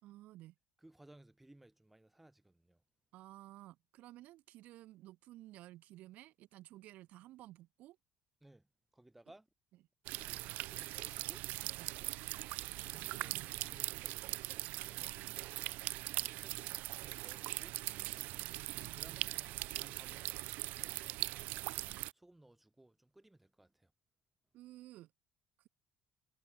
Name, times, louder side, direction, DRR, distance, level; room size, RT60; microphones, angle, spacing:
voice 1, 0.0-0.5 3.1-8.0 11.7-12.0 24.5-25.1, right 16 dB, 65° right, 6.4 m, -54 dB
voice 2, 0.8-2.8 8.4-8.6 8.9-9.5 10.2-11.4 12.8-15.2 16.1-16.6 17.0-17.8 18.9-21.2 22.1-23.9, right 1 dB, 5° right, 7.6 m, -62 dB
sound 1, 10.0-22.1, right 19 dB, 80° right, 4.5 m, -41 dB
cardioid pair, 165°, 3 cm